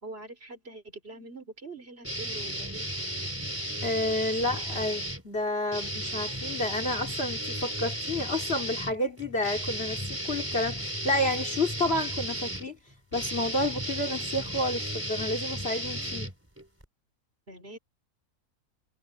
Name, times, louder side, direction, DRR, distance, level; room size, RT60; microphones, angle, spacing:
voice 1, 0.0-2.9 4.3-4.6 17.5-17.8, right 2 dB, 40° right, 4.0 m, -44 dB
sound 1, 2.0-5.2 5.7-16.8, right 1 dB, 10° right, 4.1 m, -34 dB
voice 2, 3.8-12.8 13.1-16.3, left 1 dB, 40° left, 2.7 m, -30 dB
omnidirectional pair, 1.6 m